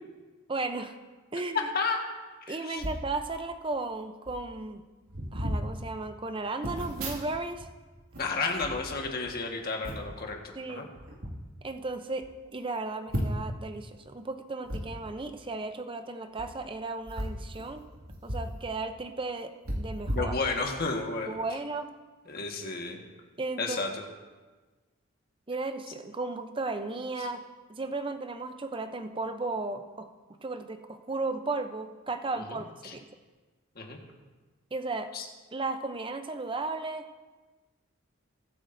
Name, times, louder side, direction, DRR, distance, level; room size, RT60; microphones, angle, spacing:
voice 1, 0.5-1.0 1.3-1.7 2.5-4.8 5.3-7.7 10.6-10.9 11.6-12.3 12.5-17.8 18.2-20.3 21.3-21.9 23.4-23.8 25.5-27.4 27.7-30.1 30.4-33.0 34.7-35.1 35.5-37.1, right 3 dB, 25° right, 8 dB, 0.6 m, -35 dB
voice 2, 1.5-2.0 2.5-2.8 8.2-10.9 20.1-21.4 22.3-23.0 23.6-23.9 27.2-27.3 32.5-32.9 33.7-34.0 35.1-35.2, left 4 dB, 45° left, 1 dB, 1.5 m, -32 dB
sound 1, 2.8-3.1 3.9-4.0 4.2-4.5 5.1-5.6 6.6-7.7 8.0-9.3 9.8-10.2 10.9-11.3 11.9-12.0 12.2-12.3 13.1-13.6 14.7-14.8 16.3-16.5 17.0-18.5 18.9-19.0 19.6-20.9 21.3-21.5, equal, 85° right, 2.1 m, -35 dB
21.5 x 8.6 x 2.6 m, 1.3 s
head